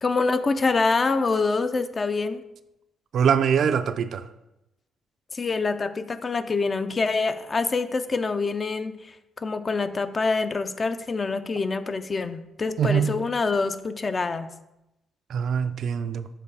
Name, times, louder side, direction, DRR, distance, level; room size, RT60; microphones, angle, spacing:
voice 1, 0.0-2.4 5.3-14.5, left 4 dB, 35° left, 11 dB, 0.4 m, -26 dB
voice 2, 3.1-4.3 12.8-13.1 15.3-16.3, right 7 dB, 65° right, 10 dB, 0.4 m, -23 dB
6.6 x 3.1 x 5.4 m, 0.91 s
cardioid pair, 90°, 0 cm